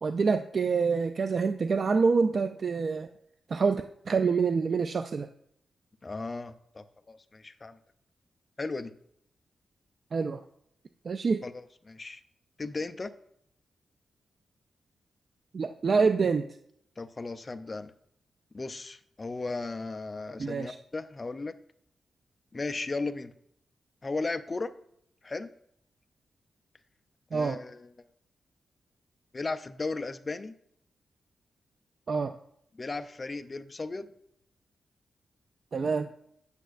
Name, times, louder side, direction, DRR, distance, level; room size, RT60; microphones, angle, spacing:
voice 1, 0.0-3.1 3.5-5.3 10.1-10.4 11.0-11.4 15.5-16.6 20.4-20.8 27.3-27.6 32.1-32.3 35.7-36.1, right 5 dB, 50° right, 8 dB, 0.3 m, -26 dB
voice 2, 6.0-7.8 8.6-8.9 11.4-12.2 12.6-13.1 17.0-17.9 18.5-21.5 22.5-23.3 24.0-24.7 25.2-25.5 27.3-28.1 29.3-30.5 32.8-34.1, left 3 dB, 30° left, 9 dB, 0.5 m, -36 dB
9.1 x 8.1 x 2.5 m, 0.70 s
wide cardioid pair, 115°, 0 cm